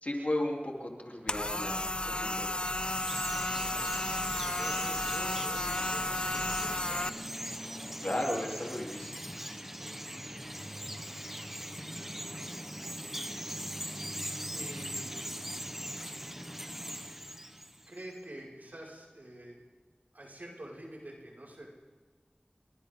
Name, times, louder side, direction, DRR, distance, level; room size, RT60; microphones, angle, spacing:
voice 1, 0.0-2.7 8.0-9.2, left 1 dB, 50° left, -1 dB, 3.7 m, -35 dB
sound 1, 1.3-7.1, left 1 dB, 30° left, 0.6 m, -33 dB
Chirp tweet, 2.4-18.0, equal, 10° right, 1.2 m, -40 dB
voice 2, 3.6-3.9 4.3-7.4 9.8-10.0 14.5-15.1 17.9-19.6 20.1-21.7, right 1 dB, 65° right, -3 dB, 6.0 m, -47 dB
28.5 x 23.5 x 3.9 m, 1.4 s
wide cardioid pair, 50°, 3 cm